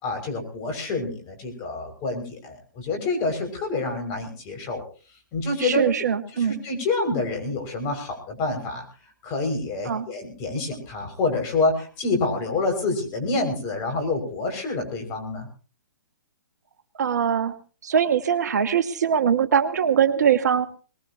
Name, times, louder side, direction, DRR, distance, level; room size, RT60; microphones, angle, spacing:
voice 1, 0.0-4.8 5.3-5.9 6.3-8.8 9.2-15.5, left 3 dB, 30° left, 5 dB, 6.0 m, -27 dB
voice 2, 5.6-6.6 9.8-10.1 17.0-17.5 17.8-20.7, right 8 dB, 60° right, 11 dB, 1.4 m, -22 dB
22.5 x 20.0 x 2.9 m, 0.37 s
figure-of-eight pair, 130°, 10 cm